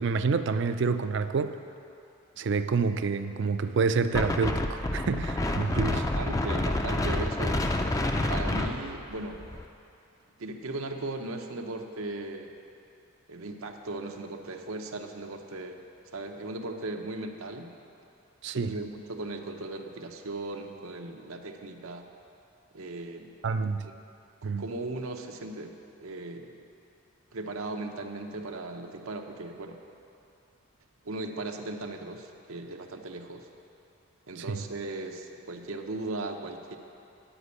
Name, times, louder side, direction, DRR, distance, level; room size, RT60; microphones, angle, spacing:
voice 1, 0.0-1.6 2.4-6.0 18.4-18.8 23.4-23.9 24.4-24.6 34.5-34.6, right 4 dB, 55° right, 10 dB, 0.4 m, -28 dB
Wind, 4.1-9.6, left 1 dB, 15° left, 0.4 m, -28 dB
voice 2, 5.8-7.6 8.3-9.4 10.4-12.5 13.3-15.8 16.1-17.7 18.5-22.1 22.7-23.3 24.4-26.5 27.3-29.8 31.0-33.5 34.3-36.8, right 2 dB, 85° right, 4 dB, 0.7 m, -37 dB
10.0 x 5.1 x 8.2 m, 2.7 s
head